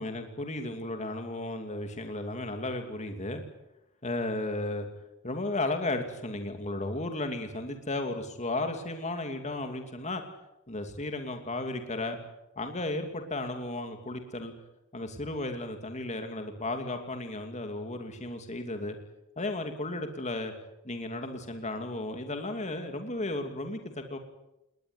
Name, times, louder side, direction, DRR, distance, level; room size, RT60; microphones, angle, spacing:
voice 1, 0.0-3.4 4.0-4.9 5.2-10.2 10.7-12.2 12.6-14.5 14.9-19.0 19.4-20.5 20.8-24.2, left 2 dB, 35° left, 6 dB, 2.7 m, -34 dB
20.5 x 19.5 x 9.7 m, 0.89 s
head